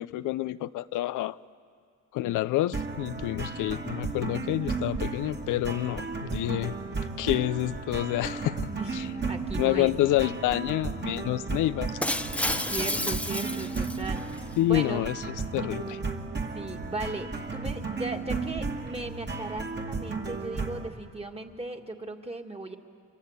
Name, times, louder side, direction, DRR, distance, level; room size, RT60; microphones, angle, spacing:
voice 1, 0.0-1.4 2.1-6.7 7.2-9.1 9.6-11.9 14.6-15.1 15.5-16.0, left 15 dB, 85° left, 14 dB, 0.6 m, -28 dB
sound 1, 2.7-20.9, right 4 dB, 35° right, 2.5 m, -34 dB
voice 2, 8.7-9.0 9.3-9.9 12.7-15.0 16.5-22.8, right 2 dB, 20° right, 4 dB, 2.1 m, -37 dB
Shatter, 12.0-14.4, left 1 dB, 5° left, 0.9 m, -31 dB
28.0 x 25.0 x 8.2 m, 2.2 s
cardioid pair, 90°, 30 cm